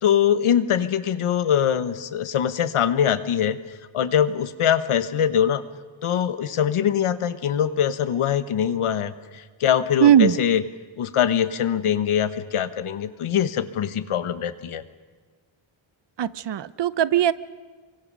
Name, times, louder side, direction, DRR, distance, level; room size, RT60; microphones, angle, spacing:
voice 1, 0.0-3.6 3.9-5.6 6.0-10.6 11.0-14.8, left 9 dB, 80° left, 12 dB, 1.3 m, -23 dB
voice 2, 10.0-10.3 16.2-17.3, right 10 dB, 55° right, 17 dB, 0.8 m, -18 dB
29.0 x 24.0 x 6.3 m, 1.4 s
wide cardioid pair, 130°, 49 cm